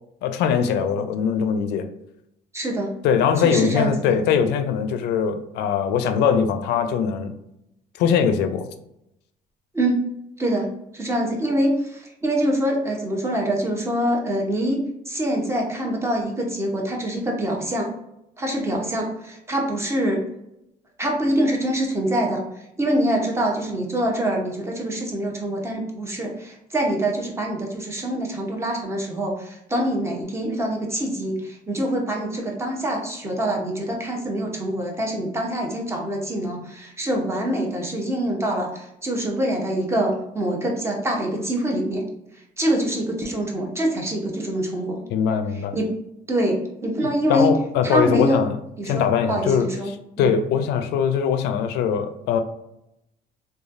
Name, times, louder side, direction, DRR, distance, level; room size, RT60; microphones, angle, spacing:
voice 1, 0.2-1.9 3.0-7.3 8.0-8.7 45.1-45.7 47.3-48.6 48.9-52.4, left 7 dB, 85° left, 0.4 m, -21 dB
voice 2, 2.5-2.9 3.4-4.2 9.7-10.0 10.4-10.7 10.9-17.9 18.4-20.2 21.0-22.4 22.8-42.0 42.6-45.0 45.7-45.9 46.3-47.5 47.8-48.4 48.8-49.9 50.2-50.3, right 1 dB, 15° right, 0.8 m, -25 dB
3.1 x 2.2 x 2.5 m
cardioid pair, 110°, 17 cm